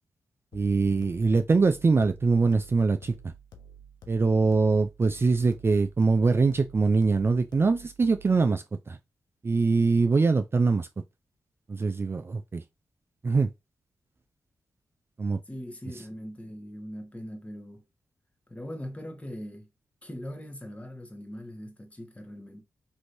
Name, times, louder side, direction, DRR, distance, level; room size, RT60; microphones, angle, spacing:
sound 1, 0.5-8.5, right 3 dB, 85° left, 0.5 m, -51 dB
voice 1, 0.5-3.3 4.1-9.0 9.4-10.9 11.7-12.6 13.2-13.5 15.2-15.4, right 4 dB, 35° right, 0.4 m, -23 dB
voice 2, 15.5-17.8 18.5-19.7 20.0-22.6, equal, 20° left, 1.0 m, -40 dB
3.1 x 2.7 x 2.5 m
supercardioid pair, 45°, 7 cm